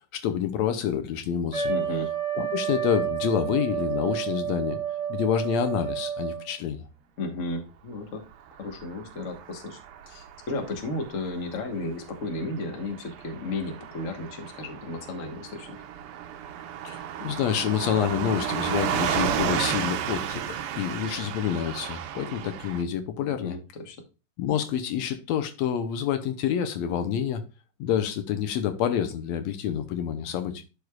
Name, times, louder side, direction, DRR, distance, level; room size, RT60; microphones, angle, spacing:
voice 1, 0.1-1.7 2.3-4.8 5.1-6.8 16.8-23.6 24.4-27.4 27.8-30.6, left 9 dB, 75° left, 1.9 m, -28 dB
Trumpet, 1.5-6.5, right 8 dB, 40° right, 0.9 m, -30 dB
voice 2, 1.7-2.1 7.2-8.2 8.6-9.8 10.1-15.8 23.2-24.0, left 2 dB, 50° left, 0.9 m, -34 dB
Car passing by / Truck, 8.5-22.8, right 9 dB, 90° right, 1.2 m, -33 dB
11.5 x 4.7 x 2.4 m
omnidirectional pair, 3.4 m